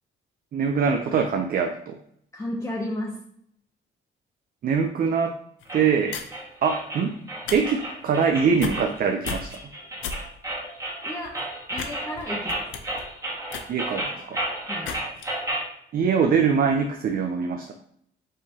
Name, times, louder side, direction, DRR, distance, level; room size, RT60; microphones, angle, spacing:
voice 1, 0.5-2.0 4.6-5.3 5.7-6.1 6.6-7.2 7.5-9.5 13.7-14.4 15.9-17.7, right 6 dB, 50° right, 5 dB, 0.5 m, -23 dB
voice 2, 2.3-3.2 11.0-11.3 11.7-12.7 14.7-14.9, left 1 dB, 15° left, -4 dB, 0.9 m, -32 dB
sound 1, 5.6-5.7 6.1-6.4 7.3-7.6 7.8-8.1 8.5-9.0 9.2-9.6 10.0-10.2 10.6-10.7 11.2-11.4 11.7-11.9 12.2-14.3 14.8-15.3, left 6 dB, 75° left, 0.6 m, -34 dB
sound 2, 5.7-15.7, right 1 dB, 15° right, 1.6 m, -33 dB
5.4 x 3.2 x 2.7 m, 0.68 s
cardioid pair, 90°, 20 cm